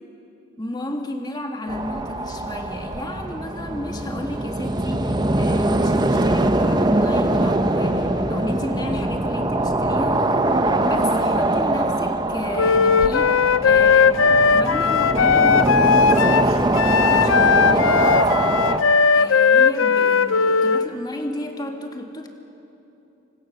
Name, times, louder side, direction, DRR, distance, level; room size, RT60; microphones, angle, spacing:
voice 1, 0.6-16.5 17.1-18.6 19.1-22.3, left 1 dB, 20° left, 3 dB, 1.9 m, -33 dB
sound 1, 1.7-18.8, right 1 dB, 20° right, 0.8 m, -22 dB
Wind instrument woodwind instrument, 12.6-20.9, left 5 dB, 80° left, 0.6 m, -17 dB
29.0 x 24.5 x 6.7 m, 3.0 s
head